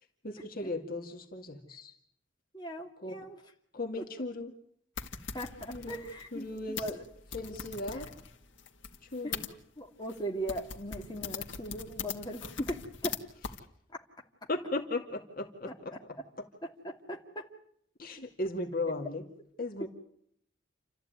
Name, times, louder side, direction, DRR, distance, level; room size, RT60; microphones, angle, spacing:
voice 1, 0.2-1.9 3.0-3.3 3.7-4.5 5.7-6.0 6.3-6.8 7.3-8.1 9.1-9.4 14.5-15.7 18.0-19.2 19.6-19.9, left 2 dB, 50° left, 3 dB, 2.2 m, -36 dB
voice 2, 2.5-3.4 4.0-4.1 5.3-7.0 7.9-8.0 9.2-13.2 15.7-15.8 16.6-17.5, equal, 20° left, 0 dB, 2.6 m, -39 dB
sound 1, 5.0-9.5 10.1-10.2 10.5-13.2 13.4-13.6, left 6 dB, 70° left, 2.0 m, -41 dB
28.5 x 14.0 x 9.3 m, 0.68 s
head